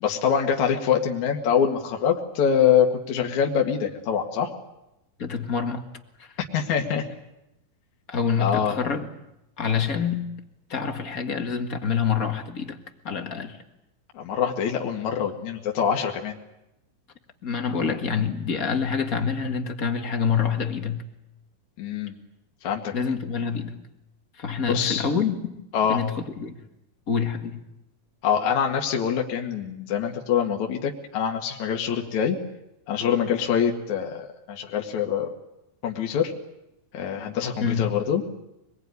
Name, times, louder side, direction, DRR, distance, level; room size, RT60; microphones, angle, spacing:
voice 1, 0.0-4.5 6.5-7.1 8.4-8.8 14.1-16.4 21.8-22.2 22.6-22.9 24.7-25.1 25.7-26.0 28.2-32.4 32.9-35.3 35.8-36.3 36.9-38.2, left 8 dB, 55° left, 1 dB, 3.0 m, -24 dB
voice 2, 5.2-5.9 6.2-6.4 8.1-9.1 9.6-10.3 10.7-12.8 13.0-13.6 17.4-21.0 22.9-23.8 24.4-25.3 25.9-26.6 27.1-27.6 37.6-38.0, left 6 dB, 35° left, 6 dB, 1.5 m, -26 dB
25.0 x 21.5 x 9.6 m, 0.89 s
omnidirectional pair, 4.2 m